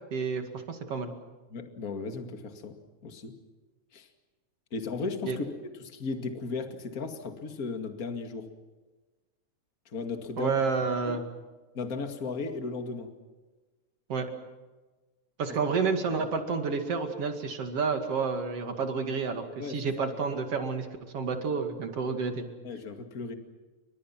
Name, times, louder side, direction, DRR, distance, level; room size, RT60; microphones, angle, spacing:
voice 1, 0.1-1.1 5.2-5.4 10.4-11.2 14.1-14.3 15.4-20.9 21.1-22.5, right 5 dB, 55° right, 5 dB, 3.2 m, -30 dB
voice 2, 1.5-2.8 3.0-3.3 3.9-4.1 4.7-5.5 5.8-8.5 9.9-10.6 11.1-11.2 11.7-13.1 19.6-20.1 22.6-23.3, left 4 dB, 30° left, 5 dB, 2.3 m, -36 dB
29.5 x 24.5 x 6.0 m, 1.2 s
omnidirectional pair, 3.4 m